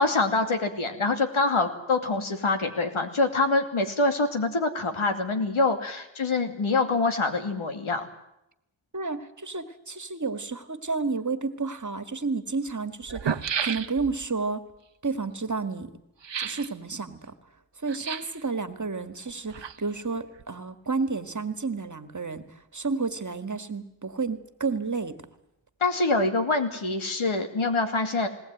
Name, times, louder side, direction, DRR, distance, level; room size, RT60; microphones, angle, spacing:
voice 1, 0.0-8.1 25.8-28.3, left 3 dB, 75° left, 5 dB, 2.7 m, -25 dB
voice 2, 8.9-14.6 15.0-15.9 16.4-17.3 17.8-25.2, right 4 dB, 35° right, 10 dB, 1.8 m, -31 dB
sound 1, 11.7-11.8 12.7-12.8 13.0-14.3 16.2-16.7 17.9-18.4 19.3-20.1 20.4-20.5, right 7 dB, 60° right, 1.0 m, -32 dB
20.5 x 19.0 x 9.1 m, 0.85 s
cardioid pair, 55°, 49 cm